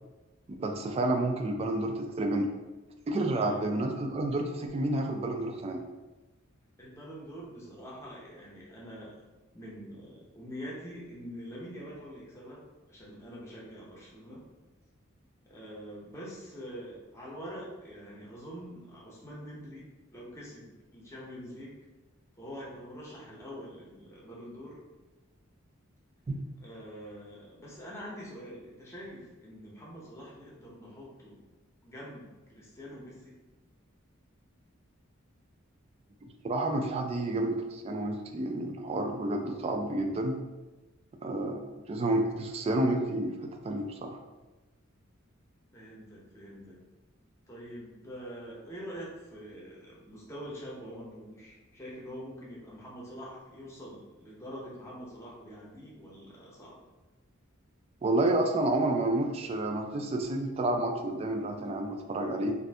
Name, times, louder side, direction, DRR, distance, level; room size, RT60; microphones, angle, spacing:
voice 1, 0.6-2.5 3.1-5.8 26.3-26.4 36.4-40.4 41.2-44.2 58.0-62.5, right 1 dB, 30° right, 4 dB, 0.3 m, -30 dB
voice 2, 6.8-9.2 9.5-12.6 12.9-14.4 15.4-21.8 22.4-24.8 26.6-31.4 31.8-33.3 41.3-41.5 45.7-46.8 47.5-56.8, equal, 15° left, -5 dB, 0.7 m, -45 dB
2.6 x 2.5 x 3.3 m, 1.1 s
head